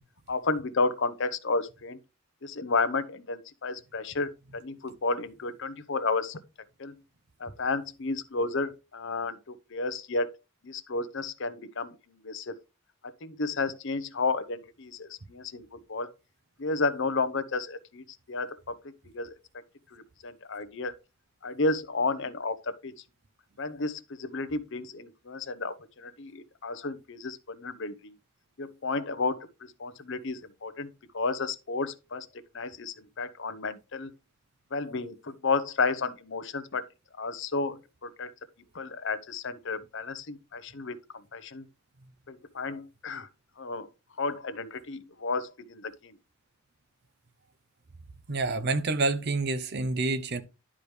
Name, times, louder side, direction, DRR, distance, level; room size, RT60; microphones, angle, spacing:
voice 1, 0.3-2.0 2.4-6.4 6.8-7.0 7.4-10.3 10.6-12.5 13.2-16.1 16.6-18.8 19.1-19.3 19.9-20.9 21.4-22.9 23.6-28.1 28.6-32.3 32.5-34.1 34.7-36.8 37.2-38.3 38.7-41.0 41.3-41.6 42.3-43.3 43.6-43.9 44.2-46.1, left 3 dB, 60° left, 0.8 m, -32 dB
voice 2, 48.3-50.4, right 3 dB, 50° right, 0.7 m, -28 dB
10.5 x 4.9 x 3.2 m
head